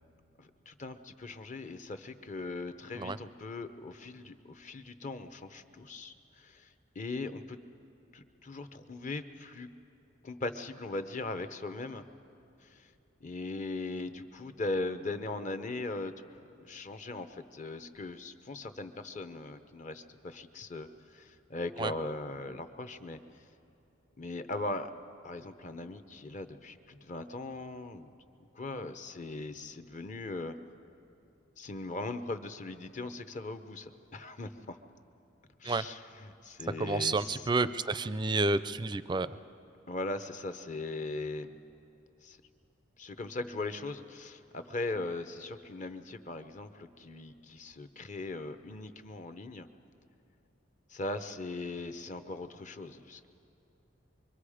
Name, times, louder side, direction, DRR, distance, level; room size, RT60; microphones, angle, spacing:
voice 1, 0.4-7.6 8.1-9.7 10.2-12.0 12.6-12.9 13.2-23.4 24.2-24.9 25.2-28.1 28.5-30.6 31.6-34.8 35.6-37.5 39.9-41.5 42.2-42.4 43.0-49.7 50.9-53.3, left 2 dB, 40° left, 10 dB, 0.7 m, -39 dB
voice 2, 36.8-39.3, right 3 dB, 25° right, 15 dB, 0.4 m, -30 dB
25.0 x 24.0 x 5.0 m, 2.7 s
head